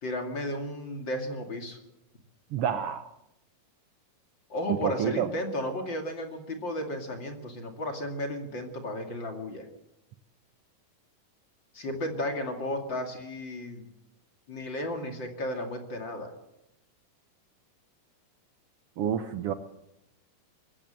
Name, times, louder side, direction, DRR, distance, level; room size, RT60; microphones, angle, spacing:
voice 1, 0.0-1.8 4.5-9.6 11.7-13.9 14.5-16.3, left 1 dB, 35° left, 4 dB, 2.8 m, -34 dB
voice 2, 2.5-3.1 4.7-5.3 19.0-19.5, right 9 dB, 70° right, 10 dB, 1.4 m, -28 dB
22.0 x 16.0 x 7.7 m, 0.86 s
omnidirectional pair, 3.8 m